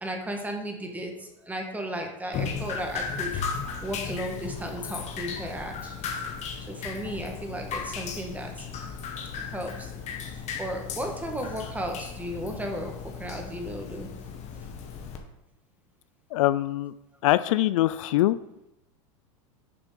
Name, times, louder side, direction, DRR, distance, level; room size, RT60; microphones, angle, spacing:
voice 1, 0.0-3.4 3.8-5.9 6.7-8.6 9.5-9.9 10.6-14.1, right 1 dB, 10° right, 2 dB, 1.5 m, -34 dB
Drip, 2.3-15.2, left 6 dB, 40° left, 1.4 m, -36 dB
voice 2, 16.3-16.9 17.2-18.4, left 15 dB, 70° left, 15 dB, 0.4 m, -23 dB
6.9 x 5.1 x 5.1 m, 0.87 s
hypercardioid pair, 110°, 17 cm